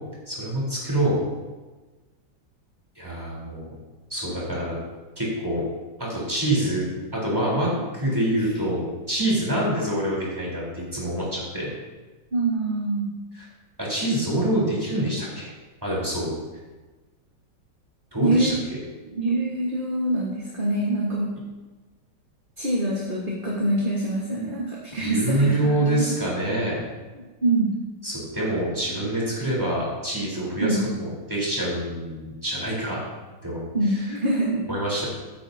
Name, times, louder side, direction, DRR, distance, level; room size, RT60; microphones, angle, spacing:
voice 1, 0.3-1.2 3.0-3.7 4.1-4.8 5.2-5.6 6.0-6.9 7.1-11.7 13.3-13.5 13.8-15.5 15.8-16.3 18.1-18.6 25.0-26.8 28.0-33.0 33.4-33.6 33.9-34.0 34.7-35.1, right 1 dB, 10° right, -6 dB, 4.1 m, -26 dB
voice 2, 12.3-13.1 18.2-18.6 19.1-21.3 22.6-26.1 27.4-27.7 30.6-30.9 33.7-34.7, right 1 dB, 30° right, -4 dB, 1.8 m, -25 dB
14.0 x 10.0 x 2.9 m, 1.3 s
omnidirectional pair, 2.0 m